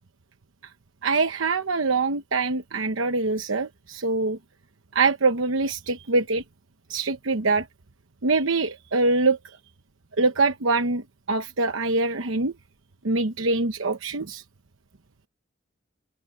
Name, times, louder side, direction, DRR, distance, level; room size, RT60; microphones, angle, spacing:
voice 1, 1.0-4.4 4.9-6.4 6.9-7.7 8.2-9.4 10.2-12.5 13.0-14.4, right 3 dB, 75° right, 1.0 m, -24 dB
open air
head